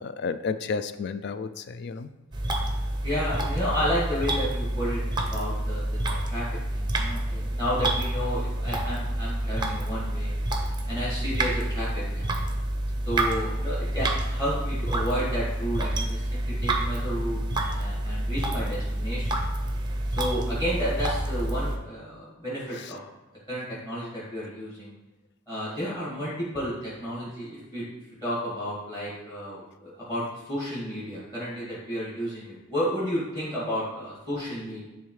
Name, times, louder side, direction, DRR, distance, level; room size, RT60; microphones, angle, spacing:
voice 1, 0.0-2.1 22.7-22.9, left 5 dB, 50° left, 12 dB, 0.3 m, -32 dB
sound 1, 2.3-21.8, right 1 dB, 20° right, 0.6 m, -28 dB
voice 2, 3.0-10.3 10.9-12.3 13.1-19.4 20.1-23.0 23.5-24.9 25.5-34.8, equal, 20° left, -9 dB, 2.0 m, -32 dB
10.5 x 3.7 x 3.2 m, 1.1 s
head